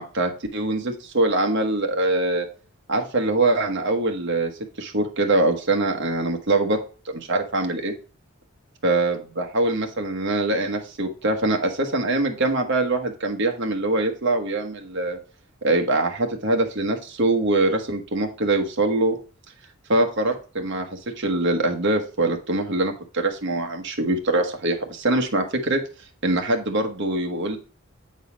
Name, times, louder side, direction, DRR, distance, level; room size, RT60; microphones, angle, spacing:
voice 1, 0.0-2.5 2.9-4.5 4.8-6.8 7.1-7.9 8.8-15.2 15.6-19.2 19.9-25.8 26.2-27.6, right 2 dB, 60° right, 4 dB, 1.2 m, -23 dB
8.4 x 4.0 x 5.0 m, 0.37 s
head